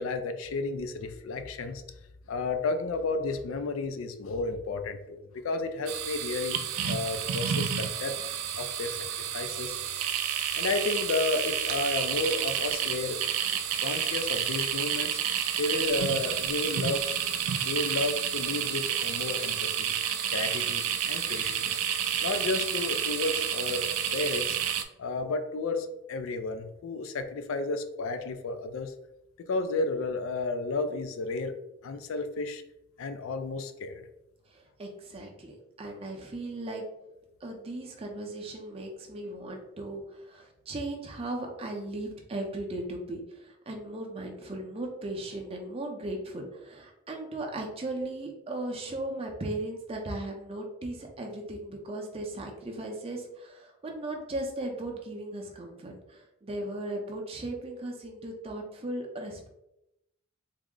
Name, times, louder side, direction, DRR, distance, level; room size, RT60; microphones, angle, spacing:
voice 1, 0.0-1.8 2.3-6.6 6.9-8.1 8.6-9.0 9.3-9.8 10.5-13.2 13.8-15.2 15.6-17.1 17.6-19.9 20.3-21.8 22.2-24.6 25.0-28.9 29.5-31.5 31.8-32.6 33.0-34.0, left 3 dB, 65° left, 8 dB, 0.4 m, -32 dB
sound 1, 5.9-24.8, right 9 dB, 80° right, 0.4 m, -30 dB
voice 2, 34.5-36.9 37.4-59.5, right 1 dB, 25° right, 1 dB, 0.5 m, -37 dB
3.5 x 2.0 x 3.6 m, 0.86 s
head